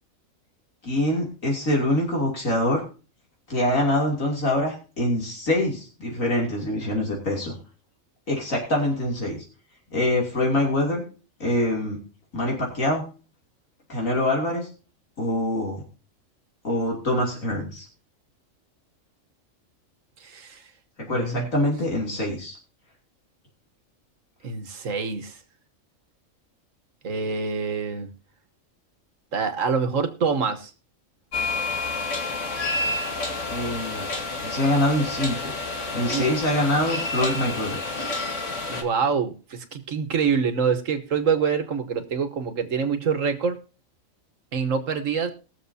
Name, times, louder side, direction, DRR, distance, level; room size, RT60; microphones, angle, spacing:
voice 1, 0.8-2.8 3.5-7.5 8.3-9.4 9.9-11.0 11.4-12.0 12.3-13.0 13.9-14.7 15.2-15.8 16.6-17.9 21.1-22.6 33.5-34.1 34.4-35.5 35.9-37.8, left 1 dB, 80° left, -1 dB, 3.3 m, -24 dB
voice 2, 20.2-20.6 21.1-21.5 24.4-25.4 27.0-28.1 29.3-30.7 36.1-36.3 38.7-43.6 44.5-45.3, right 5 dB, 70° right, 8 dB, 1.7 m, -26 dB
sound 1, 31.3-38.8, left 3 dB, 65° left, 2.0 m, -29 dB
21.0 x 7.3 x 2.7 m, 0.35 s
omnidirectional pair, 1.4 m